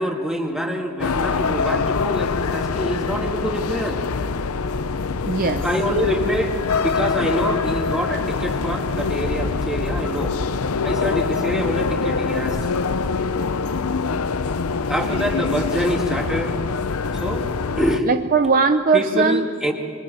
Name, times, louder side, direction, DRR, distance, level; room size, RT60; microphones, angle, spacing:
voice 1, 0.0-4.0 5.6-6.6 6.8-10.4 10.8-12.6 14.9-16.5 17.1-17.5 17.8-18.1 18.9-19.7, equal, 5° right, 1 dB, 2.2 m, -25 dB
sound 1, 1.0-18.0, left 4 dB, 90° left, 0.7 m, -24 dB
voice 2, 5.2-5.6 18.1-19.4, right 4 dB, 40° right, 8 dB, 0.6 m, -19 dB
25.5 x 22.5 x 7.8 m, 2.1 s
head